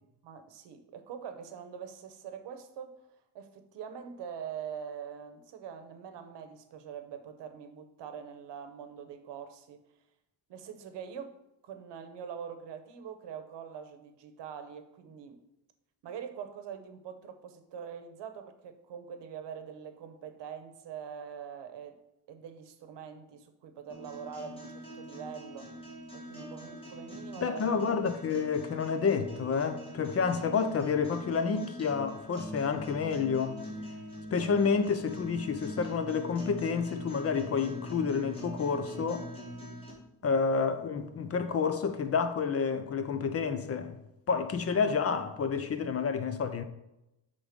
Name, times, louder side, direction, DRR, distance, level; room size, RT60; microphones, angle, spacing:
voice 1, 0.2-3.0 3.3-9.8 10.5-11.4 11.6-15.4 16.0-22.0 22.3-25.8 26.1-27.6 40.2-40.4, right 7 dB, 75° right, 0.9 m, -44 dB
sound 1, 23.9-39.9, equal, 10° left, 2.0 m, -43 dB
voice 2, 27.4-33.6 34.3-39.3 40.2-44.0 44.3-46.6, left 5 dB, 35° left, 0.4 m, -29 dB
6.5 x 3.7 x 5.0 m
cardioid pair, 135°, 42 cm